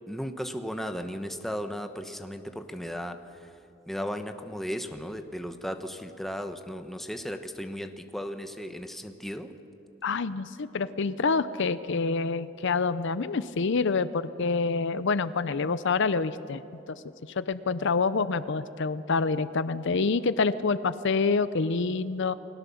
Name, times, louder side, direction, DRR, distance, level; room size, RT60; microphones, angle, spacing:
voice 1, 0.1-3.5 3.9-9.5, equal, ahead, 6 dB, 1.1 m, -36 dB
voice 2, 10.0-16.6 17.3-22.3, left 4 dB, 60° left, 14 dB, 0.6 m, -27 dB
30.0 x 20.5 x 7.1 m, 2.9 s
head